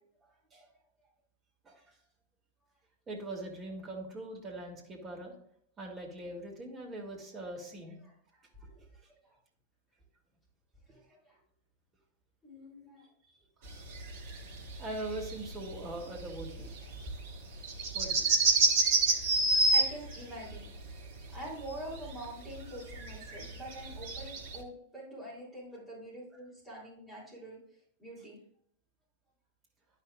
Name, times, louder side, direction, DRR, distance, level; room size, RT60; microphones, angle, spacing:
voice 1, 0.2-0.7 1.6-2.0 3.1-5.3 5.8-8.0 8.6-9.1 10.9-11.0 14.7-16.8 17.9-18.3, right 1 dB, 25° right, 0 dB, 2.3 m, -42 dB
voice 2, 10.9-11.4 12.4-13.0 17.0-17.1 19.7-27.6 28.0-28.4, right 1 dB, 5° left, -7 dB, 3.4 m, -46 dB
sound 1, 13.7-20.2 20.5-21.0 21.3-22.6 22.9-24.6, right 2 dB, 50° right, 1.3 m, -29 dB
11.0 x 5.8 x 2.4 m, 0.66 s
figure-of-eight pair, 90°, 0 cm